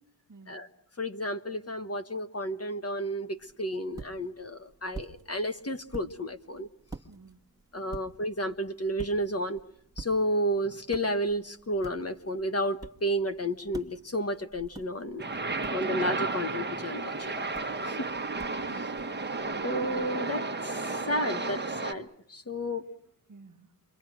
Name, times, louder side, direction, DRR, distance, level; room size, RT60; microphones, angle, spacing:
voice 1, 1.0-6.7 7.7-9.6 10.0-15.2 15.7-17.5 17.8-18.0 19.6-22.8, equal, 35° left, 10 dB, 1.4 m, -32 dB
sound 1, 3.3-20.1, right 3 dB, 10° right, 1.6 m, -49 dB
voice 2, 7.1-7.4 17.7-18.0 18.6-19.0 23.3-23.7, right 4 dB, 45° right, 4 dB, 1.6 m, -53 dB
sound 2, 15.2-21.9, right 3 dB, 25° right, 1.4 m, -33 dB
28.5 x 24.0 x 6.3 m, 0.65 s
cardioid pair, 75°, 43 cm